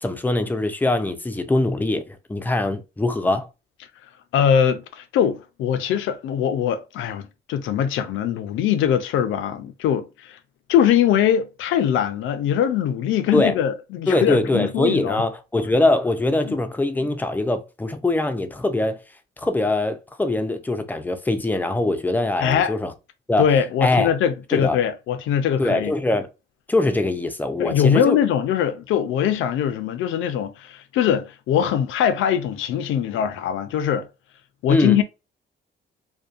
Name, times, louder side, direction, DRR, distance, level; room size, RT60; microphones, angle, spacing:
voice 1, 0.0-3.5 13.3-13.6 14.1-19.0 19.4-22.9 23.3-23.4 23.8-24.1 24.5-24.8 25.6-26.3 26.7-28.2 34.7-35.0, left 2 dB, 10° left, 0.4 m, -22 dB
voice 2, 4.3-10.4 10.7-15.2 16.4-16.6 22.4-22.7 23.4-25.9 27.6-34.1 34.6-35.0, left 9 dB, 80° left, 0.5 m, -22 dB
2.6 x 2.2 x 2.4 m
cardioid pair, 90°, 20 cm